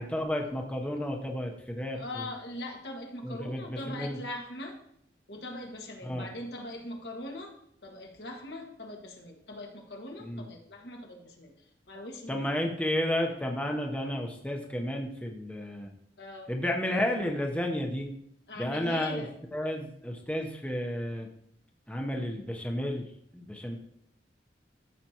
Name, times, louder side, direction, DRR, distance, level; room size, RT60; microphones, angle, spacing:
voice 1, 0.0-2.3 3.2-4.2 6.0-6.3 10.2-10.5 12.3-15.9 16.5-18.1 18.6-19.2 19.5-21.3 21.9-23.1 23.3-23.8, left 1 dB, 10° left, 2 dB, 0.9 m, -32 dB
voice 2, 1.9-4.8 5.3-7.5 7.8-11.5 11.9-12.4 16.2-16.5 18.5-19.3 22.1-22.4, left 1 dB, 70° left, 1 dB, 1.6 m, -41 dB
13.5 x 6.7 x 2.9 m, 0.70 s
head